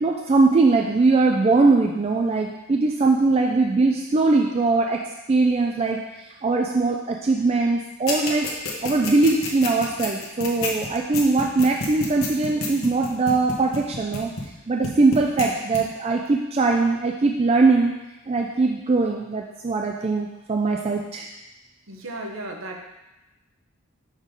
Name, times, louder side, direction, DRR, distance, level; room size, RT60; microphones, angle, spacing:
voice 1, 0.0-5.0 5.3-8.5 8.8-14.3 14.7-17.9 18.3-21.3, right 3 dB, 30° right, 1 dB, 0.3 m, -21 dB
sound 1, 8.1-14.6 14.8-15.5 15.7-15.8, left 3 dB, 70° left, 1.1 m, -29 dB
voice 2, 21.9-22.8, right 1 dB, 65° right, 2 dB, 0.9 m, -34 dB
6.3 x 3.8 x 5.1 m, 0.99 s
head